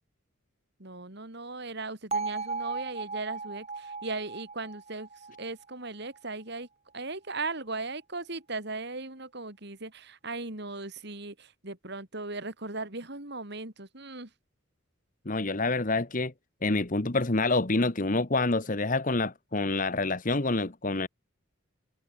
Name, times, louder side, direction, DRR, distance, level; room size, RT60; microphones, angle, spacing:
voice 1, 0.8-6.7 6.9-14.3, right 3 dB, 55° right, 3.3 m, -38 dB
Bell, 2.1-6.2, right 4 dB, 30° right, 4.6 m, -36 dB
voice 2, 15.2-16.3 16.6-21.1, left 2 dB, 40° left, 1.3 m, -27 dB
head